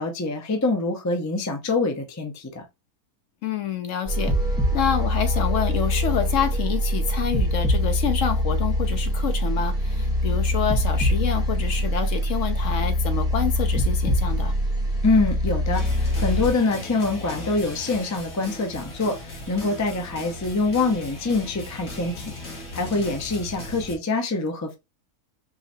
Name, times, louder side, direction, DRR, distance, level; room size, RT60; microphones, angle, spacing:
voice 1, 0.0-2.6 15.0-24.8, left 3 dB, 20° left, 0.5 m, -25 dB
voice 2, 3.4-4.3 4.7-14.5, left 8 dB, 65° left, 1.0 m, -27 dB
sound 1, 4.1-16.5, equal, 5° right, 1.5 m, -23 dB
sound 2, 15.7-24.0, left 2 dB, 45° left, 1.6 m, -37 dB
4.7 x 3.2 x 2.7 m
omnidirectional pair, 1.6 m